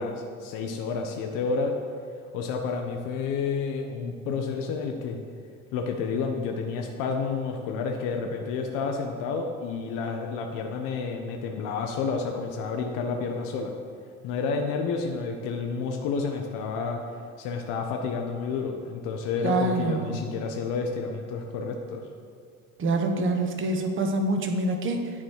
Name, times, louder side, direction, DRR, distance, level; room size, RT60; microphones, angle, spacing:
voice 1, 0.0-1.7 2.3-5.2 5.7-13.7 14.2-17.0 17.4-22.0, left 5 dB, 45° left, 3 dB, 0.8 m, -30 dB
voice 2, 19.4-20.2 22.8-25.1, right 2 dB, 30° right, 4 dB, 1.0 m, -26 dB
9.6 x 4.2 x 4.6 m, 2.3 s
hypercardioid pair, 75°, 43 cm